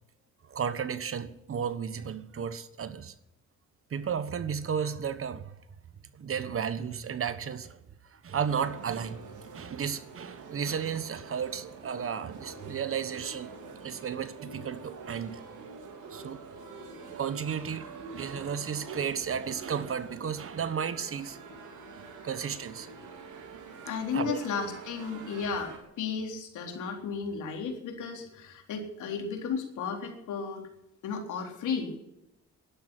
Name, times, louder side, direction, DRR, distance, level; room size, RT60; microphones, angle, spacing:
voice 1, 0.4-3.1 3.9-5.6 6.1-7.8 8.1-9.2 9.5-13.5 13.8-15.4 16.1-16.4 17.2-21.4 22.2-22.9 24.1-24.4, right 7 dB, 45° right, 1.3 m, -33 dB
sound 1, 8.5-25.8, right 4 dB, 85° right, 3.5 m, -46 dB
voice 2, 23.8-30.6 31.0-32.0, left 5 dB, 80° left, 3.8 m, -34 dB
12.0 x 11.5 x 9.9 m
cardioid pair, 90°, 30 cm